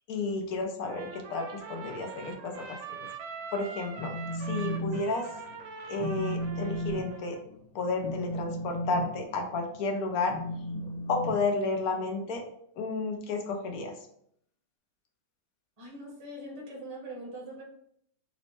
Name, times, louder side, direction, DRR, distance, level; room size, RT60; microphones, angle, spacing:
voice 1, 0.1-2.8 3.5-5.3 5.9-7.4 7.7-10.3 11.1-12.4 12.8-13.9, left 3 dB, 70° left, 3 dB, 0.8 m, -32 dB
Trumpet, 0.9-7.4, right 5 dB, 70° right, 1.0 m, -43 dB
Telephone, 4.0-5.0 5.3-5.6 6.0-12.1, equal, 90° left, 1.5 m, -35 dB
voice 2, 15.8-17.6, right 1 dB, 20° right, -4 dB, 0.9 m, -42 dB
4.3 x 2.0 x 4.1 m, 0.69 s
omnidirectional pair, 2.2 m